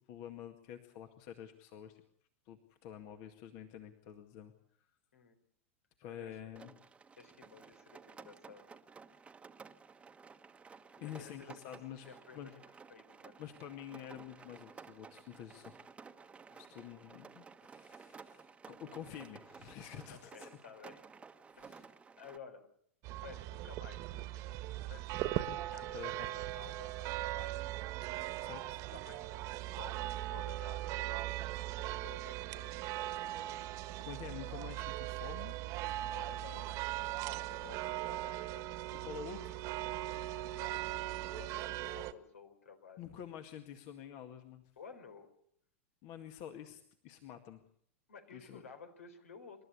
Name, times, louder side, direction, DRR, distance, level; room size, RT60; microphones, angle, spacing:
voice 1, 0.1-2.0 2.5-4.5 6.0-6.7 11.0-12.1 12.3-12.5 13.4-15.8 16.6-20.5 21.5-21.8 25.9-26.3 28.4-28.9 34.1-35.6 39.0-39.6 43.0-44.6 46.0-47.6 48.3-48.6, left 10 dB, 50° left, 6 dB, 2.0 m, -48 dB
voice 2, 6.1-6.4 7.2-8.7 10.9-11.3 12.1-12.6 12.9-13.4 16.5-16.7 20.1-21.1 21.6-22.6 23.1-27.6 28.6-32.8 36.1-36.8 37.2-38.7 40.4-43.0 44.8-45.3 48.1-49.6, left 5 dB, 85° left, 7 dB, 4.5 m, -54 dB
Rain, 6.6-22.4, right 5 dB, 15° right, 1.2 m, -55 dB
sound 1, 23.0-42.1, right 16 dB, 45° right, 1.5 m, -39 dB
28.0 x 13.0 x 8.5 m, 0.68 s
hypercardioid pair, 105°, 7 cm